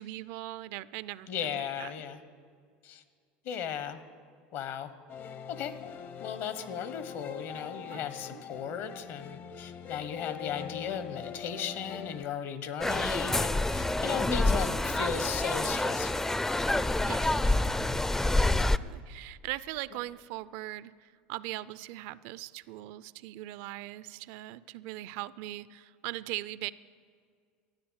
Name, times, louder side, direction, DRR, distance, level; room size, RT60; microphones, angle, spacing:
voice 1, 0.0-2.0 7.9-8.0 8.3-8.4 17.0-18.0 18.4-26.7, right 16 dB, 70° right, 18 dB, 0.4 m, -40 dB
voice 2, 1.3-2.2 2.8-3.0 3.4-4.0 4.5-4.9 5.5-5.7 6.2-16.2, left 8 dB, 60° left, 12 dB, 1.2 m, -36 dB
sound 1, 5.1-12.2, left 8 dB, 45° left, 0.8 m, -43 dB
sound 2, 12.8-18.8, left 2 dB, 10° left, 0.4 m, -27 dB
13.0 x 9.6 x 8.1 m, 2.1 s
supercardioid pair, 95°, 5 cm